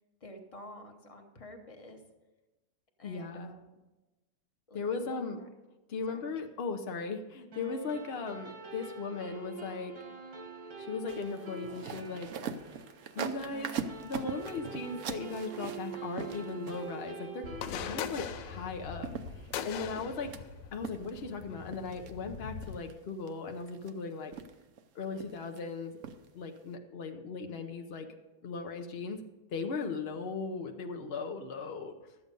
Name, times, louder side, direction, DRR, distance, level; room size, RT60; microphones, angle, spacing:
voice 1, 0.2-2.1 3.0-3.8 4.7-5.5 6.1-6.3 6.6-6.7, left 1 dB, 25° left, 3 dB, 1.0 m, -50 dB
voice 2, 3.0-3.5 4.7-5.4 5.9-9.9 10.8-12.3 13.1-13.7 14.0-19.1 19.6-20.3 20.7-24.3 24.9-25.9 26.3-28.1 28.4-29.2 29.5-31.9, left 4 dB, 55° left, 4 dB, 0.7 m, -37 dB
sound 1, 7.5-20.3, right 5 dB, 80° right, 2.5 m, -46 dB
sound 2, 11.1-17.1 18.6-18.7 19.0-20.4 20.8-21.4 21.7-22.1 22.6-22.9 23.3-23.9 24.3-24.8 25.1-25.6 26.0-26.2 26.6-26.7, right 7 dB, 60° right, 0.8 m, -41 dB
sound 3, 17.4-22.8, left 8 dB, 80° left, 1.3 m, -41 dB
12.5 x 8.4 x 5.3 m, 1.1 s
omnidirectional pair, 2.0 m